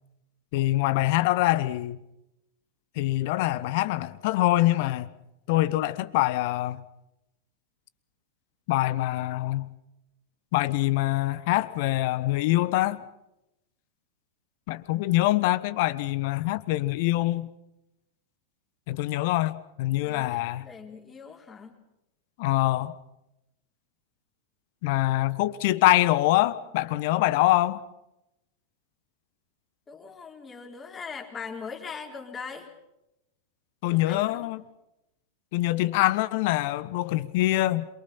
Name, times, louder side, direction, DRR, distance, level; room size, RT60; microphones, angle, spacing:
voice 1, 0.5-2.0 3.0-5.1 5.5-6.8 8.7-9.7 10.5-13.0 14.7-17.5 18.9-20.7 22.4-22.9 24.8-27.8 33.8-34.6 35.5-37.8, left 16 dB, 50° left, 1.2 m, -24 dB
voice 2, 20.0-21.8 29.9-32.7 33.9-34.5, left 5 dB, 20° left, 4.2 m, -41 dB
27.5 x 23.5 x 5.6 m
figure-of-eight pair, 90°, 0 cm